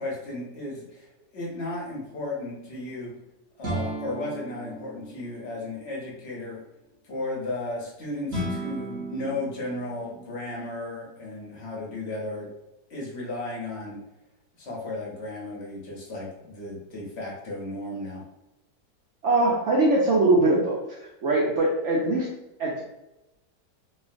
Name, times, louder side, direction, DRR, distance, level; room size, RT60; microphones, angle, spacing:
voice 1, 0.0-3.1 3.6-6.6 7.1-12.5 12.9-14.0 14.6-18.2, left 2 dB, 55° left, -3 dB, 0.8 m, -34 dB
sound 1, 3.6-5.6 8.3-10.5, right 1 dB, 50° right, 0.8 m, -34 dB
voice 2, 19.2-22.3 22.6-22.8, right 2 dB, 85° right, -4 dB, 0.6 m, -22 dB
3.1 x 2.2 x 2.5 m, 0.93 s
omnidirectional pair, 1.9 m